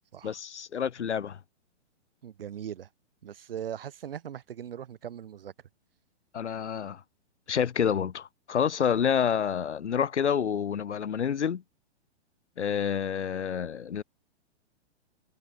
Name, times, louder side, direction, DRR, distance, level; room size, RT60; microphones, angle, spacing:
voice 1, 0.2-1.4 6.3-7.0 7.5-11.6 12.6-14.0, left 8 dB, 85° left, 4.4 m, -28 dB
voice 2, 2.2-2.9 3.2-5.5, right 9 dB, 55° right, 7.9 m, -39 dB
hypercardioid pair, 175°, 34 cm